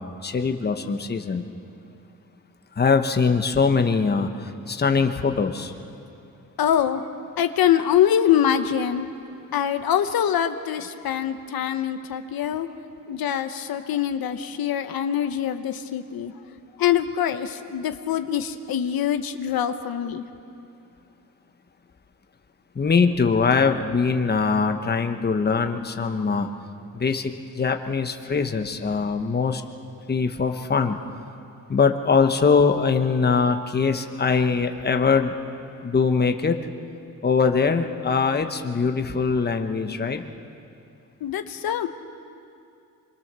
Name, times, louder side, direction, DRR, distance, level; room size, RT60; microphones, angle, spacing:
voice 1, 0.0-1.4 2.8-5.7 22.7-26.5 26.9-29.6 30.1-31.0 31.7-35.3 35.8-36.6 37.2-40.2, left 5 dB, 30° left, 5 dB, 1.2 m, -22 dB
voice 2, 6.6-7.0 7.4-9.1 9.5-12.7 13.1-16.3 16.8-20.2 41.2-41.9, left 10 dB, 80° left, 8 dB, 1.1 m, -24 dB
25.0 x 23.5 x 6.9 m, 2.6 s
cardioid pair, 120°, 35 cm